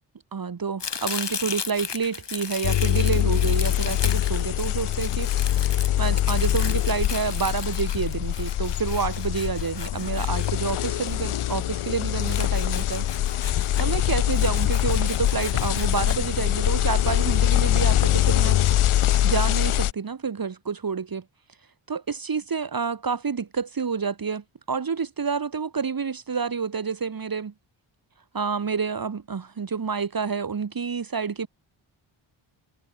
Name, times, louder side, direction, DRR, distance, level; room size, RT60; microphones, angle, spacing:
voice 1, 0.3-5.3 5.6-13.1 13.5-18.6 19.2-21.2 21.9-27.5 28.3-31.5, right 5 dB, 45° right, 2.0 m, -29 dB
Domestic sounds home sounds, 0.8-11.1 12.2-14.0 14.3-16.2, left 6 dB, 60° left, 4.2 m, -36 dB
sound 1, 2.6-19.9, left 12 dB, 90° left, 0.9 m, -23 dB
cardioid pair, 80°, 49 cm